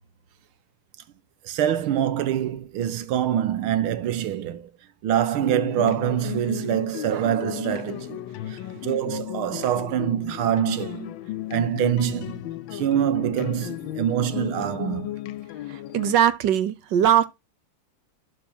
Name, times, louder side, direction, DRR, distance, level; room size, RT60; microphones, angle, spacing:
voice 1, 1.4-4.7 5.0-8.2 8.5-11.1 11.5-12.4 12.7-15.1, right 10 dB, 85° right, 1.8 m, -25 dB
sound 1, 5.4-16.1, left 13 dB, 75° left, 1.4 m, -34 dB
voice 2, 15.9-17.3, right 10 dB, 65° right, 1.3 m, -20 dB
12.0 x 4.4 x 4.4 m
omnidirectional pair, 2.3 m